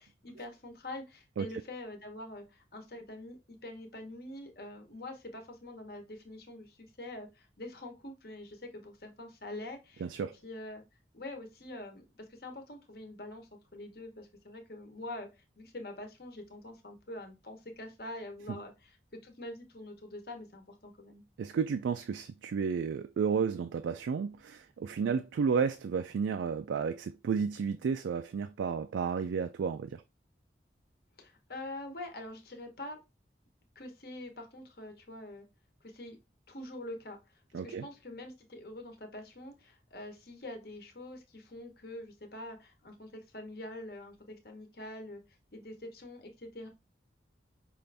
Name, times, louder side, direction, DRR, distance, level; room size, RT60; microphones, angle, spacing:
voice 1, 0.0-10.8 11.1-19.0 19.2-21.2 31.2-33.0 33.7-35.5 35.8-36.2 36.5-45.2 45.5-46.7, left 1 dB, 55° left, 1.0 m, -45 dB
voice 2, 10.0-10.3 18.5-18.6 21.4-30.0 37.5-37.9, right 6 dB, 90° right, 0.3 m, -32 dB
5.4 x 2.5 x 3.3 m
head